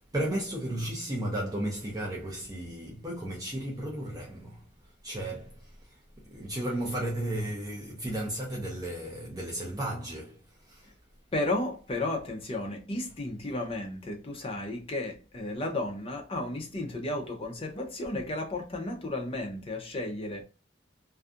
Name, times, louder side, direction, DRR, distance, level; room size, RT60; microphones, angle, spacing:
voice 1, 0.1-10.9, right 1 dB, 20° right, 0.5 m, -34 dB
voice 2, 11.3-20.4, left 2 dB, 30° left, 0.5 m, -33 dB
2.6 x 2.4 x 2.4 m
head